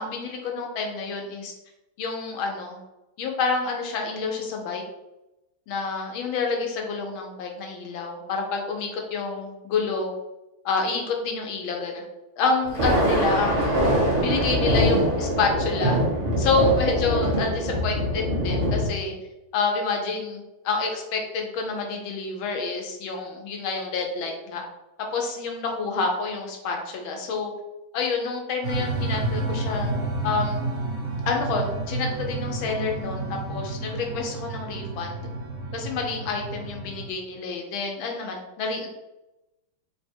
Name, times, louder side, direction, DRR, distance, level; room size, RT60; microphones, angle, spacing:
voice 1, 0.0-1.5 2.0-2.8 3.2-4.8 5.7-10.1 10.6-12.0 12.4-13.9 14.2-16.0 16.4-19.1 19.5-24.6 25.1-27.5 27.9-29.9 30.2-30.6 31.2-33.2 33.5-35.2 35.7-38.9, left 4 dB, 90° left, 2 dB, 1.6 m, -28 dB
Thunder, 12.6-18.9, equal, 25° right, 0.8 m, -23 dB
sound 1, 28.6-37.1, right 2 dB, 55° right, 1.2 m, -30 dB
3.9 x 2.2 x 4.3 m, 0.97 s
omnidirectional pair, 2.1 m